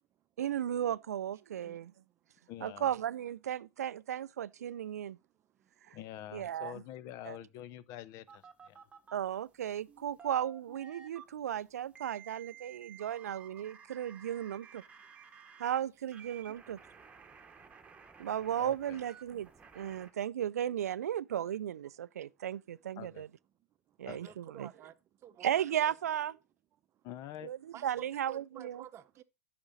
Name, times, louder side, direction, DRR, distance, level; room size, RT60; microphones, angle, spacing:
voice 1, 0.4-1.9 2.6-5.2 5.9-6.0 6.3-6.8 7.2-7.4 9.1-14.8 15.6-16.8 18.2-19.5 19.8-23.3 24.0-24.7 25.4-26.4 27.4-28.8, right 10 dB, 80° right, 0.3 m, -35 dB
voice 2, 1.5-2.3 5.2-5.7 11.3-11.4 12.7-12.8 15.0-15.1 22.2-22.3 23.9-25.9 26.9-27.0 27.7-29.2, right 11 dB, 30° right, 0.7 m, -53 dB
voice 3, 2.5-2.9 5.9-8.8 18.6-19.0 23.0-23.2 24.1-24.3 27.0-27.5, left 12 dB, 45° left, 0.6 m, -46 dB
sound 1, 8.3-9.2 9.9-11.2 11.9-15.8 16.1-20.1, right 7 dB, 15° right, 1.2 m, -54 dB
9.8 x 6.0 x 4.0 m
hypercardioid pair, 100°, 8 cm